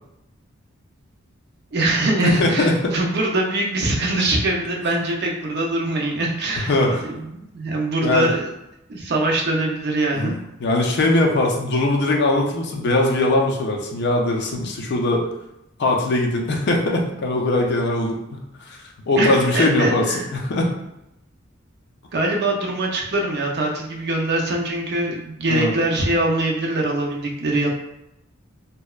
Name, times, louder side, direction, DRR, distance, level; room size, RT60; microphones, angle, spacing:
voice 1, 1.7-6.7 7.0-8.5 8.9-10.4 19.2-20.3 22.1-27.7, right 2 dB, 55° right, -1 dB, 0.5 m, -23 dB
voice 2, 2.2-2.9 6.7-7.0 8.0-8.3 10.1-10.3 10.6-15.3 15.8-18.4 18.7-18.8 19.1-20.7 25.5-25.7, left 2 dB, 55° left, 1 dB, 0.5 m, -20 dB
2.8 x 2.1 x 2.3 m, 0.86 s
head